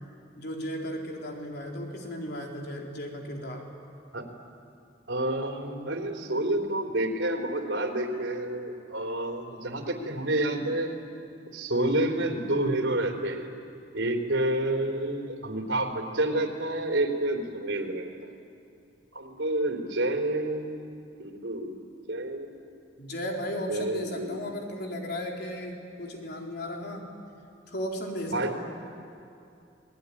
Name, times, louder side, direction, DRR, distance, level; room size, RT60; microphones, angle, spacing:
voice 1, 0.4-3.6 23.0-27.1 27.7-28.7, equal, 60° left, 0 dB, 3.7 m, -35 dB
voice 2, 5.1-10.9 11.5-13.5 13.9-18.1 19.1-20.8 21.2-21.7 22.1-22.5 23.7-24.3 28.3-28.6, right 1 dB, 85° right, 2 dB, 3.7 m, -29 dB
27.5 x 20.0 x 10.0 m, 2.6 s
head